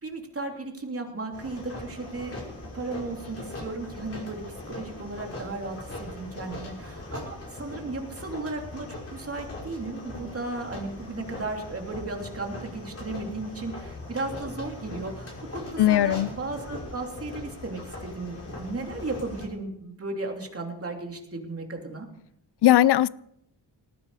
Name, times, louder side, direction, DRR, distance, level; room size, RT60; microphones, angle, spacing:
voice 1, 0.0-22.1, right 2 dB, 35° right, 3.1 m, -35 dB
sound 1, 1.3-19.5, left 2 dB, 35° left, 5.6 m, -40 dB
voice 2, 15.8-16.3 22.6-23.1, left 13 dB, 70° left, 0.6 m, -18 dB
19.0 x 15.0 x 4.9 m
wide cardioid pair, 125°, 42 cm